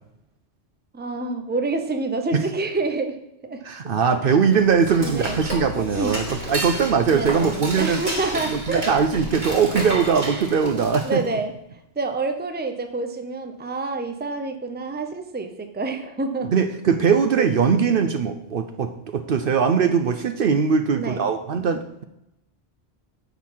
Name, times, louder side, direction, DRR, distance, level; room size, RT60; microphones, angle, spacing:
voice 1, 0.9-3.6 4.2-4.3 5.0-5.4 5.8-6.2 7.1-8.9 10.7-11.5 11.9-16.5 21.0-21.2, right 3 dB, 10° right, 6 dB, 0.7 m, -28 dB
voice 2, 3.6-8.0 8.5-11.2 16.5-22.0, right 6 dB, 60° right, 8 dB, 0.8 m, -21 dB
Dishes pots and pans / Cutlery silverware, 4.4-11.3, right 1 dB, 45° right, 2.1 m, -31 dB
10.5 x 4.1 x 7.3 m, 0.82 s
omnidirectional pair, 1.1 m